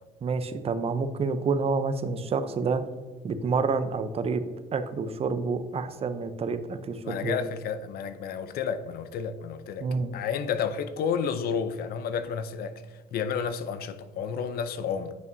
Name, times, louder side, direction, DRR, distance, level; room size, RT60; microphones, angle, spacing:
voice 1, 0.2-2.8 3.2-4.4 4.7-7.4 9.8-10.1, right 4 dB, 35° right, 0.6 m, -28 dB
voice 2, 7.0-9.9 10.1-12.8 13.1-15.1, left 7 dB, 65° left, 0.5 m, -31 dB
9.3 x 5.5 x 2.6 m
cardioid pair, 110°, 17 cm